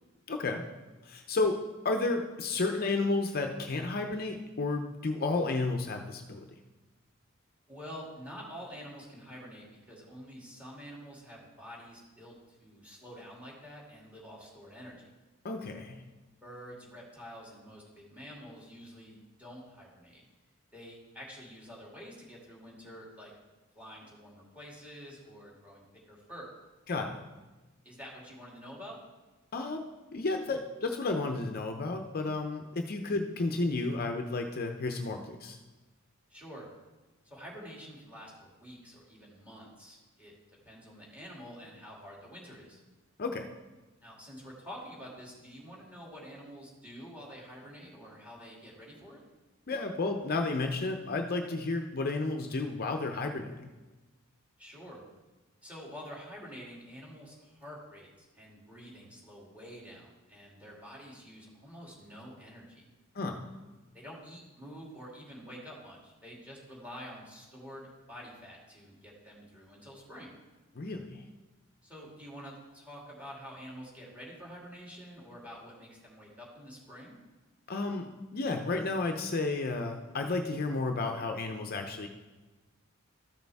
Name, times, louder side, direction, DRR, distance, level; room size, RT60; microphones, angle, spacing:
voice 1, 0.3-0.6 1.0-1.6 1.8-6.5 15.4-16.0 26.9-27.2 29.5-29.8 30.1-35.6 43.2-43.5 49.7-53.7 63.1-63.5 70.7-71.2 77.7-82.1, left 3 dB, 45° left, 4 dB, 0.6 m, -32 dB
voice 2, 7.7-15.1 16.4-20.2 20.7-23.3 23.7-26.5 27.8-29.0 36.3-36.7 37.2-42.8 44.0-49.2 54.6-55.0 55.6-62.8 63.9-70.3 71.8-77.2, equal, 5° right, -4 dB, 2.4 m, -48 dB
13.5 x 6.5 x 3.5 m, 1.2 s
head